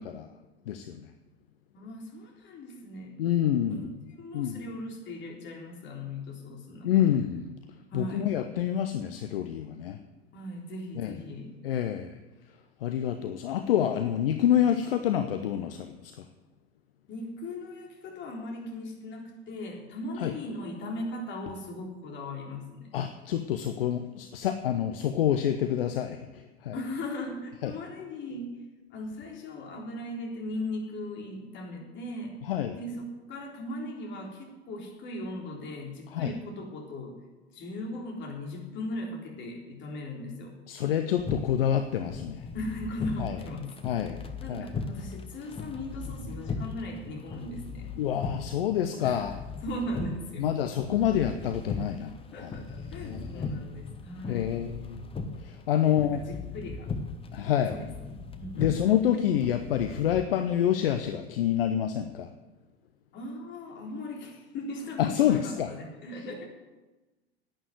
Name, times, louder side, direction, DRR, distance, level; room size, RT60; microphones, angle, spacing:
voice 1, 0.7-1.1 3.2-3.8 4.3-4.6 6.8-7.5 7.9-10.0 11.0-11.2 11.6-12.2 12.8-16.2 20.2-20.3 22.9-26.7 27.6-27.7 32.5-32.8 36.1-36.3 40.7-42.4 43.2-43.3 43.8-44.2 44.5-44.7 48.0-49.3 50.4-52.1 52.4-52.5 53.0-53.5 54.3-55.1 55.4-56.2 57.3-57.8 58.6-62.3 65.0-65.7, left 10 dB, 60° left, 8 dB, 1.0 m, -27 dB
voice 2, 1.7-3.1 3.6-3.8 4.2-7.1 7.9-8.3 10.3-11.5 17.1-22.9 26.7-28.6 28.9-37.2 37.5-40.5 42.5-43.8 44.4-48.0 49.0-49.3 49.6-50.5 51.1-51.3 52.3-54.6 55.8-56.9 57.5-58.1 58.4-58.8 63.1-66.4, left 1 dB, 35° left, 0 dB, 3.8 m, -38 dB
sound 1, 41.2-60.2, left 4 dB, 15° left, 1.3 m, -38 dB
11.0 x 9.2 x 9.4 m, 1.1 s
figure-of-eight pair, 80°, 32 cm